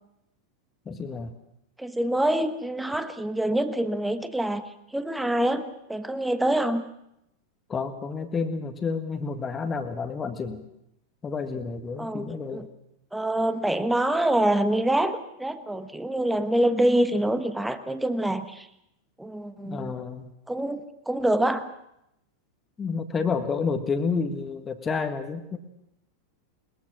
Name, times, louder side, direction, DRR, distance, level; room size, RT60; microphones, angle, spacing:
voice 1, 0.8-1.3 7.7-10.6 11.2-12.7 19.6-20.3 22.8-25.6, left 5 dB, 20° left, 6 dB, 1.6 m, -30 dB
voice 2, 1.8-4.6 4.9-6.9 12.0-12.7 13.1-18.7 19.2-19.9 20.5-21.7, right 1 dB, 5° right, 11 dB, 1.3 m, -25 dB
21.5 x 21.5 x 6.2 m, 0.81 s
figure-of-eight pair, 90°, 0 cm